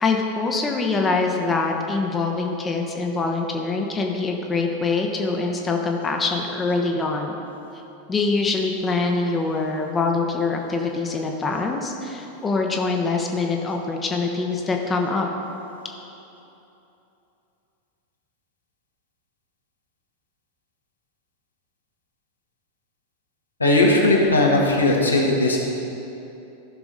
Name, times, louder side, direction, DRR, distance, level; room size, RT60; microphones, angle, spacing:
voice 1, 0.0-7.3 8.1-15.3, left 3 dB, 15° left, 2 dB, 0.8 m, -24 dB
voice 2, 23.6-25.6, left 2 dB, 80° left, -2 dB, 1.4 m, -18 dB
14.0 x 6.0 x 4.0 m, 3.0 s
figure-of-eight pair, 90°, 0 cm